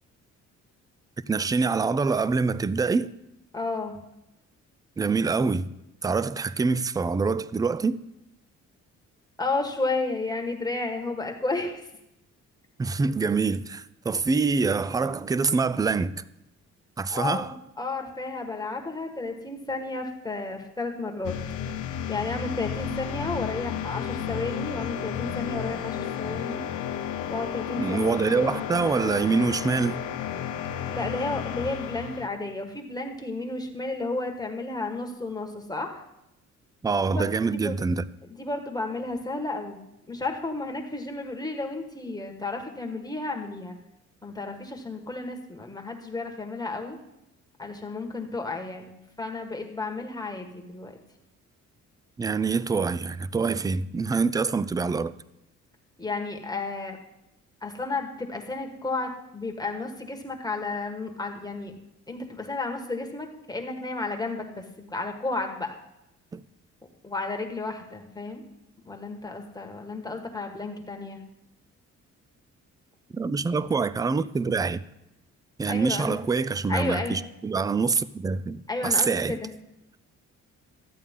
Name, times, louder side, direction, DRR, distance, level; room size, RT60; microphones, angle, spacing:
voice 1, 1.3-3.1 5.0-5.7 6.0-8.0 12.8-16.2 17.0-17.5 27.8-30.1 36.8-38.0 52.2-55.1 66.3-66.4 73.1-74.8 75.6-79.4, right 4 dB, 15° right, 0.3 m, -25 dB
voice 2, 3.5-4.0 9.4-11.8 17.1-21.4 22.1-26.6 27.3-28.1 30.9-36.0 37.1-37.8 38.3-39.8 40.1-43.7 44.2-47.0 47.6-50.9 56.0-57.0 57.6-61.7 62.1-65.7 67.0-68.4 68.8-71.2 75.7-76.2 76.7-77.2 78.7-79.5, left 3 dB, 15° left, 1.4 m, -32 dB
sound 1, 21.2-32.3, left 9 dB, 85° left, 0.7 m, -32 dB
13.0 x 8.4 x 3.6 m
cardioid pair, 90°, 30 cm